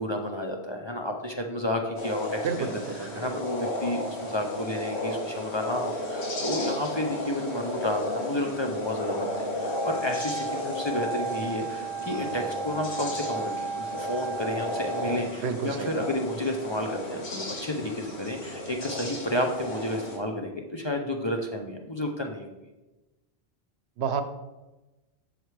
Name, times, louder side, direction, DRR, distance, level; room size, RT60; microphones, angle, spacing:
voice 1, 0.0-22.5, left 1 dB, 35° left, 2 dB, 0.5 m, -31 dB
sound 1, 2.0-20.2, left 1 dB, 80° left, 1.6 m, -34 dB
voice 2, 2.4-3.3 15.4-16.0 24.0-24.2, right 6 dB, 85° right, 9 dB, 0.9 m, -30 dB
Wind instrument woodwind instrument, 9.6-15.2, right 3 dB, 65° left, 2.3 m, -34 dB
7.7 x 6.5 x 3.3 m, 1.1 s
omnidirectional pair, 1.1 m